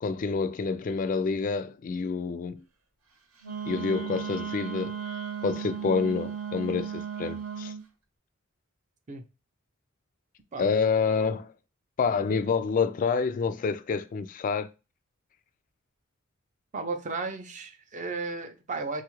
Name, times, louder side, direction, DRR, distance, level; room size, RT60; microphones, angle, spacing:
voice 1, 0.0-2.6 3.7-5.0 5.4-7.7 10.6-11.5 12.0-14.7, left 5 dB, 40° left, 0.3 m, -28 dB
Wind instrument woodwind instrument, 3.4-7.8, right 7 dB, 75° right, 0.9 m, -35 dB
voice 2, 16.7-19.0, right 3 dB, 35° right, 0.5 m, -34 dB
3.4 x 2.4 x 3.0 m
head